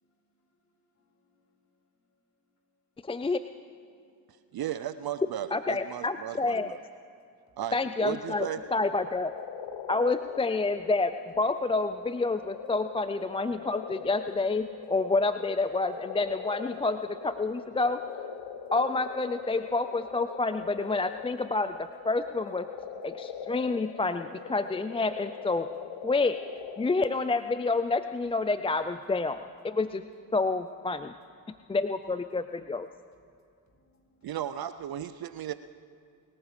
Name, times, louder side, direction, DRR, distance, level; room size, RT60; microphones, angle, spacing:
voice 1, 0.9-1.6 3.9-4.2 7.5-7.6 9.8-9.9 18.5-18.7 33.7-34.3, left 1 dB, 35° left, 0 dB, 4.9 m, -70 dB
voice 2, 3.0-3.4 5.5-6.7 7.7-9.3 9.9-18.0 18.7-22.7 23.0-25.7 26.0-26.4 26.8-30.0 30.3-31.1 31.7-32.4 32.7-32.8, left 3 dB, 15° left, 11 dB, 0.4 m, -28 dB
voice 3, 4.5-6.8 7.6-8.6 34.2-35.5, right 11 dB, 50° right, 12 dB, 0.6 m, -35 dB
sound 1, 8.3-27.3, left 7 dB, 60° left, 1.2 m, -42 dB
26.0 x 14.5 x 3.3 m, 2.4 s
hypercardioid pair, 45°, 48 cm